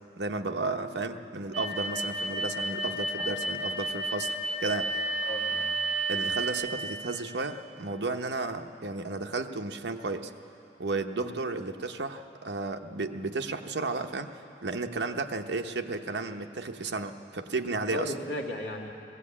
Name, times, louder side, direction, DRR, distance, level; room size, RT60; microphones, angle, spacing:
voice 1, 0.2-4.3 4.6-5.0 6.1-10.3 10.8-14.3 14.6-18.1, right 3 dB, 70° right, 5 dB, 0.9 m, -33 dB
sound 1, 1.5-6.5, right 2 dB, 5° right, 4.4 m, -31 dB
voice 2, 5.2-5.7 11.1-11.4 17.9-18.9, left 1 dB, 70° left, 0 dB, 2.0 m, -36 dB
19.0 x 16.0 x 8.5 m, 2.8 s
head